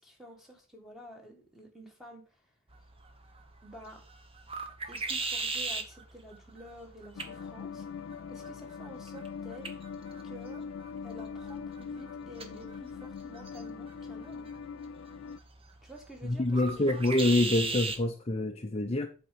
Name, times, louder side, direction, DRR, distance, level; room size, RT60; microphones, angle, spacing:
voice 1, 0.0-2.4 3.6-4.0 4.9-7.9 8.3-9.7 10.2-10.6 11.0-14.5 15.8-17.0, equal, ahead, 1.8 m, -50 dB
sound 1, 2.7-18.0, right 3 dB, 25° right, 1.0 m, -40 dB
sound 2, 7.2-15.4, left 6 dB, 60° left, 0.3 m, -42 dB
voice 2, 16.2-19.1, left 1 dB, 30° left, 0.6 m, -26 dB
8.4 x 4.4 x 5.1 m
head